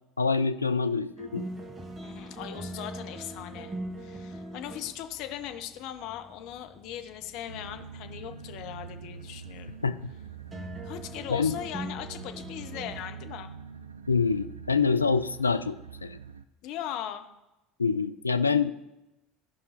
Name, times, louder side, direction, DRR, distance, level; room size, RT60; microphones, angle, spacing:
voice 1, 0.2-1.4 9.8-10.0 11.3-11.6 14.1-16.2 17.8-18.7, left 5 dB, 90° left, 10 dB, 0.3 m, -26 dB
sound 1, 1.2-13.0, right 1 dB, 20° right, 1.5 m, -42 dB
voice 2, 2.0-9.8 10.8-13.5 16.6-17.2, left 11 dB, 55° left, 7 dB, 0.8 m, -39 dB
sound 2, 7.5-16.4, right 7 dB, 80° right, 0.4 m, -45 dB
15.0 x 5.4 x 4.0 m, 0.95 s
figure-of-eight pair, 70°, 0 cm